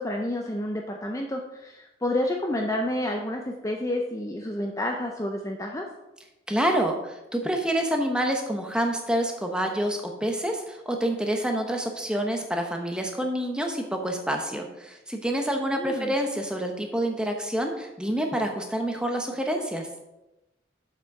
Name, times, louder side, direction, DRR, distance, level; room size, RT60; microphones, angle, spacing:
voice 1, 0.0-5.9 15.7-16.1, left 1 dB, 15° left, 1 dB, 0.6 m, -29 dB
voice 2, 6.5-19.9, right 1 dB, 5° right, 2 dB, 1.0 m, -27 dB
7.4 x 6.0 x 5.4 m, 0.96 s
head